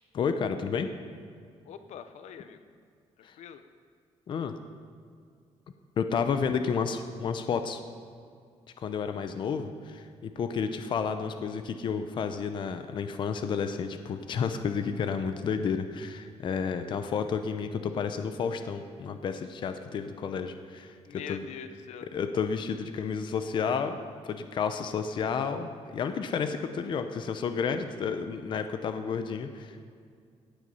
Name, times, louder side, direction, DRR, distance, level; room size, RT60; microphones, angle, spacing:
voice 1, 0.1-0.9 3.2-3.3 4.3-4.5 6.0-7.8 8.8-20.9 21.3-21.5 22.1-24.0 24.2-29.9, left 6 dB, 45° left, 8 dB, 0.7 m, -31 dB
voice 2, 1.6-2.6 3.4-3.6 21.1-22.1, left 8 dB, 80° left, 10 dB, 0.8 m, -43 dB
17.5 x 8.1 x 5.5 m, 2.2 s
cardioid pair, 180°, 12 cm